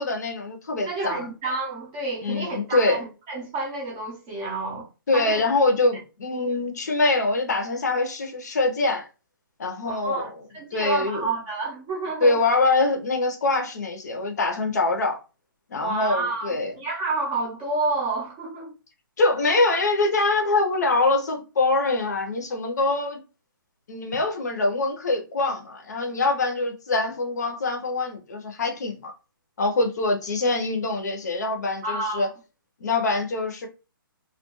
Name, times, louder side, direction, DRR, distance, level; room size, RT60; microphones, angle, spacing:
voice 1, 0.0-1.3 2.2-3.0 5.1-9.1 9.6-10.3 10.7-11.3 12.2-15.2 15.7-16.7 19.2-23.2 23.9-29.1 29.6-32.3 32.8-33.7, left 2 dB, 50° left, 0.6 m, -24 dB
voice 2, 0.9-4.9 5.1-5.4 6.3-6.5 9.8-12.4 15.7-18.7 31.8-32.3, right 3 dB, 10° right, 0.5 m, -29 dB
2.3 x 2.2 x 2.9 m
hypercardioid pair, 175°, 12 cm